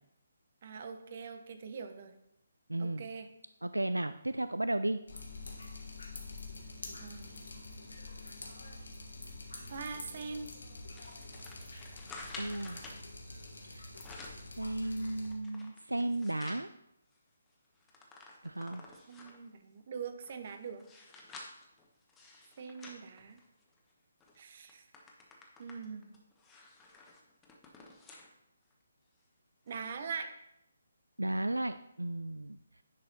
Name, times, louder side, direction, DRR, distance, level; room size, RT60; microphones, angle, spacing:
voice 1, 0.6-2.1 2.8-3.3 7.0-7.5 9.7-10.5 19.1-20.8 22.6-23.4 24.4-24.8 25.6-26.1 29.7-30.3, right 5 dB, 45° right, 8 dB, 0.9 m, -42 dB
voice 2, 2.7-3.1 3.6-5.0 12.4-12.8 13.6-13.9 14.6-16.7 18.4-18.9 31.2-32.6, right 1 dB, 80° right, 12 dB, 0.3 m, -34 dB
Drip, 5.1-15.3, left 2 dB, 70° left, 1.7 m, -47 dB
sound 1, 10.9-13.0 13.7-14.5 14.9-16.7 17.1-17.2 17.5-19.5 20.1-23.8 24.2-24.4 24.7-28.3 28.7-28.8 29.7-29.8, left 3 dB, 10° left, 1.1 m, -51 dB
10.0 x 5.0 x 4.0 m, 0.81 s
figure-of-eight pair, 140°, 0 cm